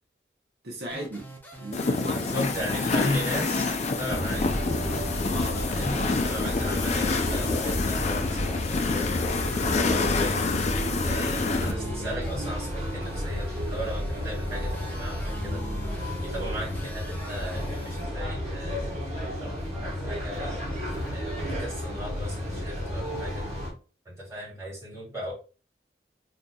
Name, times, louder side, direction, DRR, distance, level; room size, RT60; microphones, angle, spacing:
voice 1, 0.6-1.3 1.6-2.4 5.3-6.5, right 1 dB, 65° right, 0.7 m, -37 dB
sound 1, 0.9-18.0, equal, 10° left, 0.7 m, -45 dB
sound 2, 1.7-11.7, left 4 dB, 40° left, 0.4 m, -28 dB
voice 2, 2.1-4.5 5.7-9.2 9.6-10.5 11.0-15.6 16.2-18.9 19.2-20.6 21.1-23.5 24.0-25.3, equal, 15° right, 1.8 m, -36 dB
sound 3, 4.1-23.7, left 1 dB, 40° right, 1.3 m, -31 dB
3.9 x 2.7 x 2.3 m
head